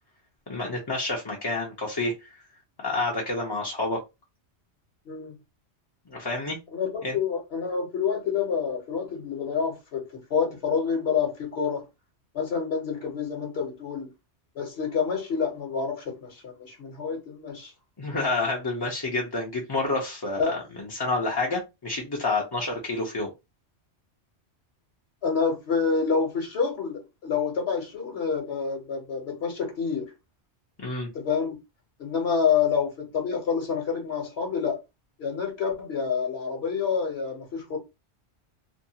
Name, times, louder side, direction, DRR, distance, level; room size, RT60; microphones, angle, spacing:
voice 1, 0.5-2.3 2.8-4.0 6.1-6.6 7.0-7.2 18.0-23.3 30.8-31.1, left 2 dB, 30° left, 0.4 m, -29 dB
voice 2, 5.1-5.4 6.7-11.8 12.3-14.1 14.5-17.7 20.4-20.6 25.2-30.1 31.1-31.6 32.0-34.8 35.2-37.8, left 6 dB, 65° left, 1.1 m, -28 dB
2.5 x 2.2 x 2.7 m
omnidirectional pair, 1.2 m